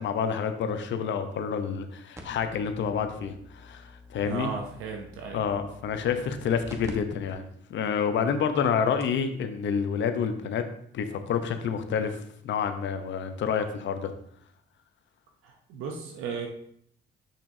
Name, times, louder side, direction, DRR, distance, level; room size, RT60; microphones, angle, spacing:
voice 1, 0.0-4.5 5.3-10.6 10.9-14.1, left 7 dB, 70° left, 8 dB, 0.8 m, -28 dB
sound 1, 2.1-6.9 7.3-7.4 8.0-8.1 8.7-8.8 9.0-9.3 10.5-10.6, left 1 dB, 15° right, 1.1 m, -47 dB
voice 2, 4.2-5.4 15.4-16.5, right 5 dB, 90° right, 2 dB, 0.7 m, -35 dB
6.8 x 6.0 x 2.7 m, 0.68 s
cardioid pair, 90°, 20 cm